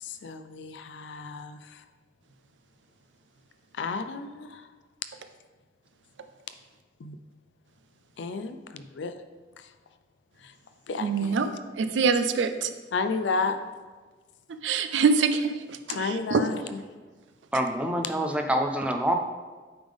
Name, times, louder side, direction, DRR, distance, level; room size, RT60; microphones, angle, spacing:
voice 1, 0.0-1.8 3.8-4.6 7.0-7.2 8.2-9.1 10.9-11.6 12.9-13.6 15.9-16.8, left 4 dB, 80° left, 9 dB, 0.4 m, -32 dB
voice 2, 11.0-11.5 11.8-12.7 14.6-15.5 15.9-16.4, right 5 dB, 85° right, 9 dB, 0.4 m, -24 dB
voice 3, 17.5-19.1, equal, 5° right, 3 dB, 0.5 m, -26 dB
8.8 x 3.6 x 3.5 m, 1.4 s
head